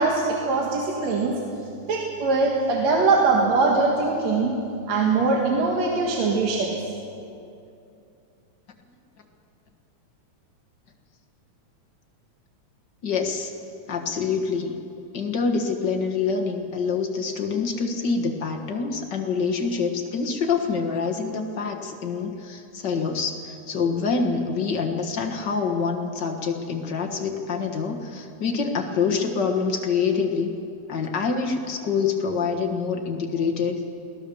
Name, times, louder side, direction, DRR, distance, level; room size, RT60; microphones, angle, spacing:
voice 1, 0.0-1.4 1.9-4.6 4.9-6.7, right 3 dB, 65° right, 0 dB, 2.8 m, -22 dB
voice 2, 13.0-13.5 13.9-14.7 15.1-30.5 30.9-33.8, left 5 dB, 45° left, 2 dB, 1.7 m, -26 dB
22.5 x 17.5 x 7.1 m, 2.6 s
omnidirectional pair, 3.4 m